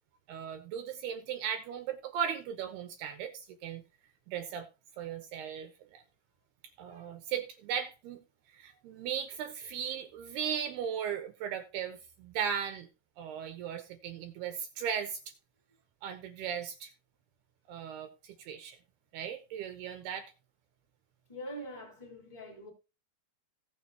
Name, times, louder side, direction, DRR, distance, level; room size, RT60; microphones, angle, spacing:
voice 1, 0.3-3.8 4.3-4.7 5.0-6.0 6.8-8.2 8.5-12.9 13.2-15.3 16.0-16.9 17.7-18.8 19.1-20.3, right 8 dB, 75° right, 2.6 m, -37 dB
voice 2, 21.3-22.7, equal, 5° left, 3.5 m, -43 dB
18.0 x 6.7 x 2.9 m
omnidirectional pair, 5.3 m